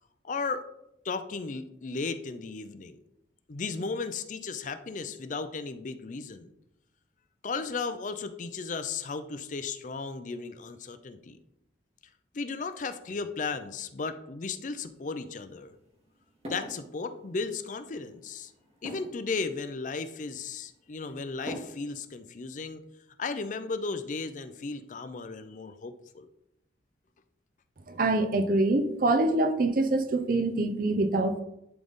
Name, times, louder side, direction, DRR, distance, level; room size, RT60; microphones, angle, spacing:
voice 1, 0.2-0.6 1.0-3.0 3.5-6.5 7.4-11.4 12.3-15.7 16.4-18.5 18.8-22.8 23.2-26.3, left 4 dB, 45° left, 10 dB, 0.5 m, -35 dB
sound 1, 14.8-22.2, equal, 35° right, 1.9 m, -47 dB
voice 2, 27.9-31.4, right 2 dB, 50° right, 9 dB, 0.6 m, -25 dB
11.0 x 3.9 x 3.6 m, 0.83 s
head